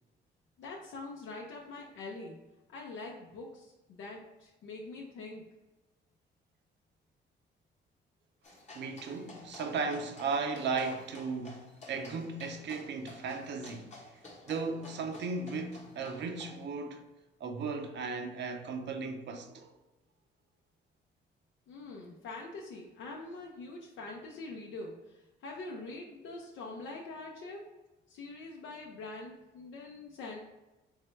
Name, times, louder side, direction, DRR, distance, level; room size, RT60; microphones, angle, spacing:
voice 1, 0.6-2.4 2.7-5.4 21.7-27.6 28.1-30.4, left 3 dB, 75° left, 0.6 m, -44 dB
sound 1, 8.4-16.6, left 2 dB, 35° left, 1.0 m, -52 dB
voice 2, 8.7-13.9 14.5-17.0 17.4-19.7, right 4 dB, 65° right, 0.7 m, -36 dB
3.6 x 3.3 x 3.1 m
cardioid pair, 90°, 20 cm